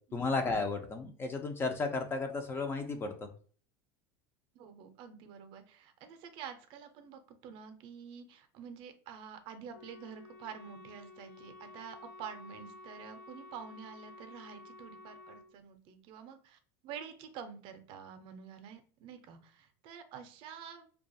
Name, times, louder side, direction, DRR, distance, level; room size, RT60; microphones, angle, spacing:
voice 1, 0.1-3.1, left 3 dB, 20° left, 6 dB, 0.4 m, -33 dB
voice 2, 4.5-20.9, right 7 dB, 50° right, 8 dB, 0.5 m, -48 dB
Wind instrument woodwind instrument, 9.7-15.5, left 2 dB, 90° left, 1.2 m, -52 dB
2.4 x 2.2 x 2.6 m, 0.41 s
supercardioid pair, 135°, 11 cm